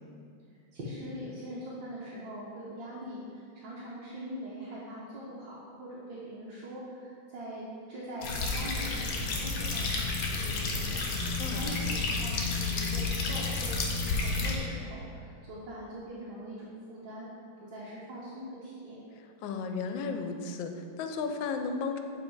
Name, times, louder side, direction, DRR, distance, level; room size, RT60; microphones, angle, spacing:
voice 1, 0.7-17.3 17.7-19.0, equal, 75° right, -7 dB, 1.7 m, -42 dB
sound 1, 8.2-14.6, left 3 dB, 60° left, 1.2 m, -31 dB
voice 2, 19.4-22.0, left 5 dB, 80° left, 6 dB, 1.3 m, -34 dB
7.5 x 3.8 x 4.6 m, 2.3 s
omnidirectional pair, 2.1 m